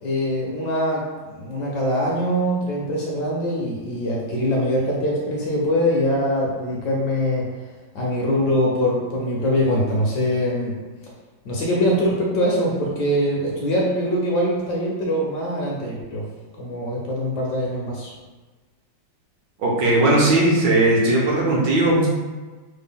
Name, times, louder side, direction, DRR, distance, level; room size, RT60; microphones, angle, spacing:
voice 1, 0.0-7.5 7.9-10.8 11.4-16.3 16.6-18.1, equal, 70° left, -3 dB, 1.1 m, -23 dB
voice 2, 19.6-22.1, right 2 dB, 70° right, -4 dB, 1.3 m, -18 dB
3.4 x 2.1 x 3.7 m, 1.3 s
omnidirectional pair, 2.1 m